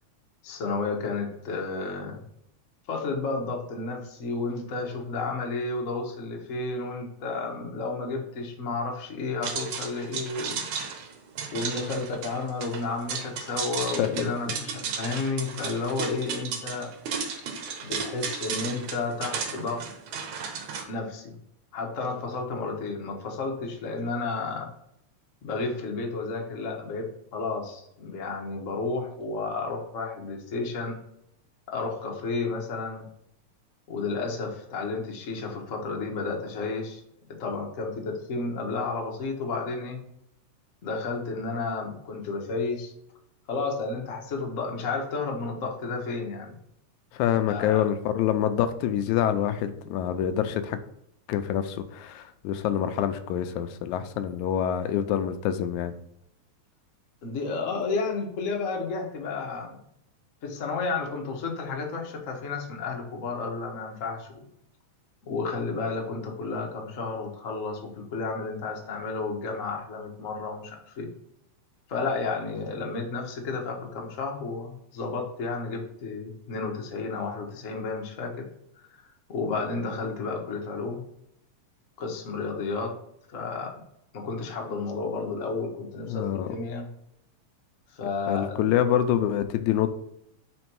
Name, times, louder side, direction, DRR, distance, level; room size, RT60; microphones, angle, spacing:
voice 1, 0.4-2.2 2.9-10.6 11.5-16.9 17.8-19.9 20.9-21.3 21.7-24.7 25.4-31.0 31.7-33.0 33.9-37.0 37.4-40.0 40.8-42.9 43.5-46.6 47.5-47.8 57.2-59.8 60.4-64.4 65.3-71.1 71.9-78.3 79.3-81.0 82.0-82.9 83.3-83.8 84.1-86.9 87.9-88.7, left 3 dB, 60° left, 0 dB, 0.8 m, -32 dB
sound 1, 9.4-20.8, right 6 dB, 85° right, 2.4 m, -34 dB
voice 2, 14.0-14.6 47.1-50.8 51.3-55.9 86.1-86.5 88.3-89.9, left 10 dB, 85° left, 10 dB, 1.9 m, -26 dB
5.2 x 4.0 x 4.5 m, 0.73 s
omnidirectional pair, 3.4 m